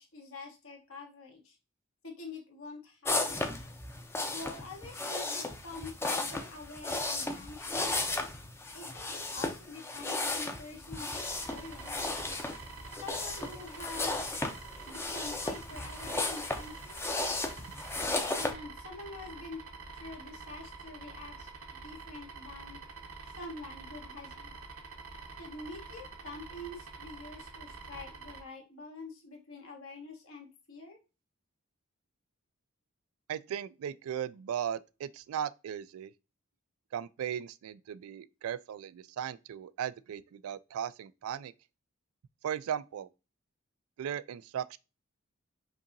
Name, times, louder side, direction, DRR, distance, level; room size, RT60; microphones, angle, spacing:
voice 1, 0.0-1.6 2.0-3.8 4.3-8.0 8.7-12.2 13.0-14.2 14.8-17.0 18.4-19.6 19.9-22.8 23.4-24.5 25.4-31.0, left 3 dB, 75° left, 1.4 m, -46 dB
sound 1, 3.0-18.5, left 2 dB, 10° left, 0.5 m, -35 dB
sound 2, 11.1-28.4, right 4 dB, 70° right, 0.8 m, -47 dB
voice 2, 33.3-36.1 36.9-41.5 42.4-43.1 44.0-44.8, right 9 dB, 85° right, 0.3 m, -37 dB
5.2 x 2.8 x 2.5 m
head